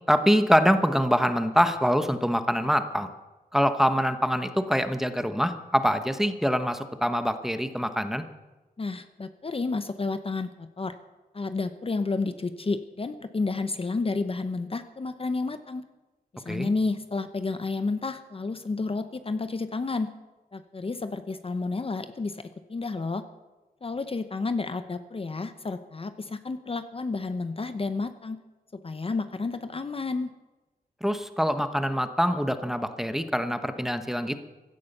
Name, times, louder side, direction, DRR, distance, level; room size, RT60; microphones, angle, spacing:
voice 1, 0.1-3.1 3.5-8.2 16.5-16.7 31.0-34.4, equal, ahead, 9 dB, 1.0 m, -24 dB
voice 2, 8.8-11.0 11.3-15.8 16.3-20.1 20.5-23.2 23.8-28.4 28.8-30.3, left 3 dB, 35° left, 10 dB, 0.8 m, -31 dB
16.0 x 11.5 x 6.7 m, 1.1 s
wide cardioid pair, 105°, 16 cm